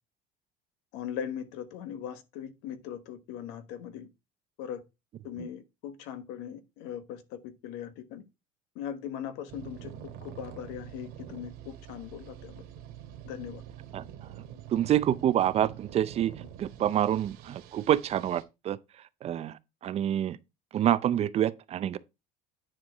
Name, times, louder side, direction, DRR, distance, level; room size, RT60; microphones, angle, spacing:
voice 1, 0.9-4.1 4.6-4.8 5.2-8.2 8.7-12.5 13.2-13.6, left 9 dB, 80° left, 1.3 m, -39 dB
sound 1, 9.5-18.4, right 10 dB, 65° right, 2.0 m, -46 dB
voice 2, 14.7-16.3 16.6-18.8 19.2-19.5 19.8-20.4 20.7-22.0, right 11 dB, 35° right, 0.5 m, -27 dB
9.9 x 4.6 x 4.5 m
cardioid pair, 140°, 18 cm